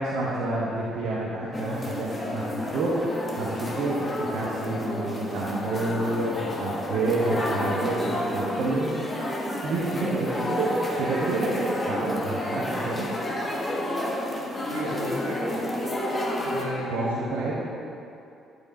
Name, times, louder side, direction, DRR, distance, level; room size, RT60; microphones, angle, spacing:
voice 1, 0.0-9.2 9.6-10.7 11.0-13.1 16.9-17.6, right 2 dB, 65° right, -7 dB, 1.1 m, -29 dB
sound 1, 1.5-16.6, left 1 dB, 25° left, 1.4 m, -30 dB
voice 2, 14.7-15.7 16.4-17.5, right 1 dB, 90° right, -10 dB, 1.4 m, -34 dB
11.0 x 5.1 x 4.2 m, 2.6 s
hypercardioid pair, 45°, 0 cm